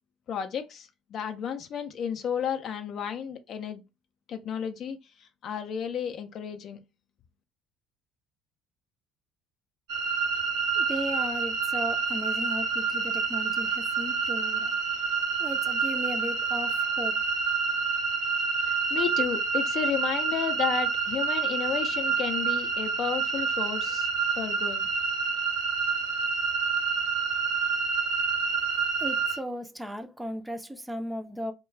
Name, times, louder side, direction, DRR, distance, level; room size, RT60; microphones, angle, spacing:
voice 1, 0.3-3.8 4.3-6.8 18.6-24.1 24.4-24.9, left 8 dB, 55° left, 0.4 m, -32 dB
sound 1, 9.9-29.4, right 5 dB, 75° right, 0.8 m, -28 dB
voice 2, 10.7-14.7 15.4-17.2 29.0-31.5, equal, 5° right, 0.5 m, -36 dB
2.3 x 2.2 x 3.2 m
hypercardioid pair, 60°, 0 cm